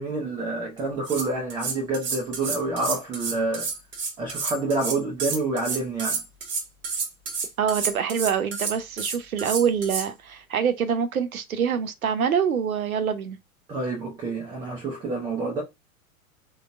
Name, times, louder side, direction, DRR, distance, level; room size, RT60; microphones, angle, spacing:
voice 1, 0.0-3.7 4.2-6.2 13.7-15.6, right 3 dB, 10° right, 0.3 m, -28 dB
sound 1, 0.8-10.1, right 4 dB, 25° right, 0.9 m, -30 dB
voice 2, 7.6-13.4, right 7 dB, 80° right, 0.7 m, -25 dB
3.7 x 2.2 x 2.4 m
figure-of-eight pair, 95°, 42 cm